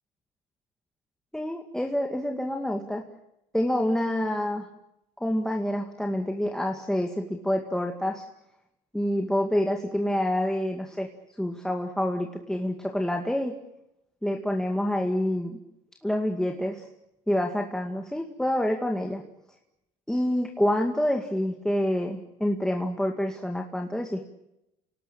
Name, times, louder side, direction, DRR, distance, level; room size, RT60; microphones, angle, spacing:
voice 1, 1.3-3.1 3.5-4.7 5.2-8.3 8.9-11.1 11.4-13.6 14.2-15.6 16.0-16.9 17.3-19.2 20.1-24.3, left 1 dB, 5° left, 2 dB, 2.1 m, -27 dB
28.0 x 18.5 x 8.8 m, 0.89 s
cardioid pair, 110°, 17 cm